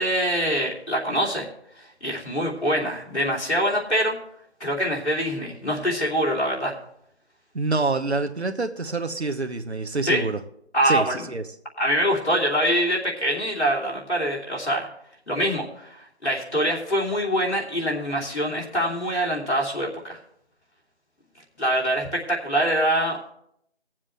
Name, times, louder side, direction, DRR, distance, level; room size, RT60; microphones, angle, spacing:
voice 1, 0.0-1.5 1.8-4.1 4.6-6.7 10.0-10.2 10.7-11.2 11.8-14.9 15.3-20.2 21.6-23.2, equal, 85° left, -3 dB, 3.1 m, -24 dB
voice 2, 7.5-10.4 10.8-11.4, right 3 dB, 75° right, 7 dB, 1.0 m, -26 dB
20.5 x 7.4 x 3.3 m, 0.72 s
figure-of-eight pair, 175°, 33 cm